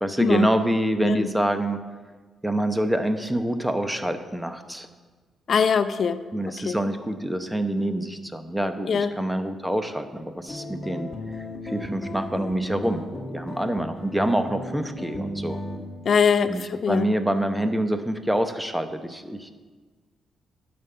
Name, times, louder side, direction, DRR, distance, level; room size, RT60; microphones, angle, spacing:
voice 1, 0.0-1.8 2.4-4.9 6.3-11.1 11.3-13.0 13.3-15.6 16.5-19.5, right 1 dB, 5° right, 8 dB, 0.9 m, -26 dB
voice 2, 5.5-6.2 6.5-6.8 8.9-9.1 16.1-17.1, left 6 dB, 60° left, 12 dB, 0.6 m, -22 dB
sound 1, 10.5-15.8, left 1 dB, 35° left, 1.7 m, -35 dB
11.0 x 5.2 x 6.8 m, 1.4 s
cardioid pair, 80°, 0 cm